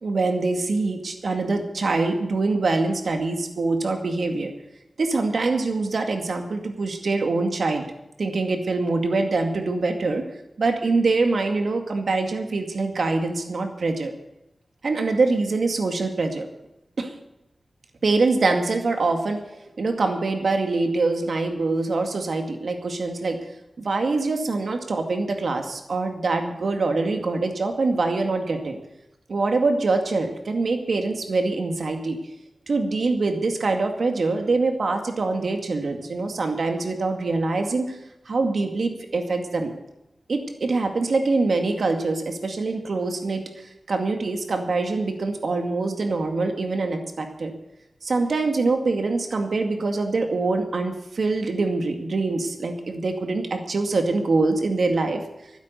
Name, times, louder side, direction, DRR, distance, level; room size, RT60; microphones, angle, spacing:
voice 1, 0.0-4.5 5.0-7.9 8.2-10.2 10.6-14.1 14.8-16.5 17.0-17.1 18.0-19.4 19.8-23.4 23.8-28.8 29.3-32.2 32.7-38.0 38.3-39.7 40.3-47.5 48.0-55.2, right 3 dB, 80° right, 4 dB, 2.2 m, -24 dB
12.5 x 9.7 x 9.4 m, 0.89 s
wide cardioid pair, 80°, 0 cm